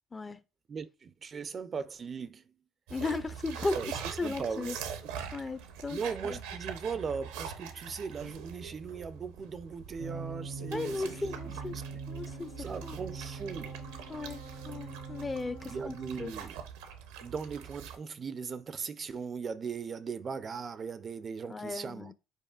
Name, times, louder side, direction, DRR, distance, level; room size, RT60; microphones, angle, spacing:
voice 1, 0.7-2.5 3.7-5.1 5.9-11.8 12.6-13.8 15.6-16.6 17.2-22.1, right 5 dB, 40° right, 0.4 m, -39 dB
voice 2, 2.9-3.8 4.2-4.8 5.3-6.0 6.2-6.4 10.7-11.8 12.1-12.5 12.8-13.0 14.1-16.3 21.5-22.1, left 3 dB, 25° left, 0.5 m, -36 dB
sound 1, 2.9-18.0, right 8 dB, 85° right, 0.7 m, -43 dB
sound 2, 10.0-16.3, right 4 dB, 90° left, 1.7 m, -43 dB
5.5 x 4.1 x 2.3 m
supercardioid pair, 75°, 0 cm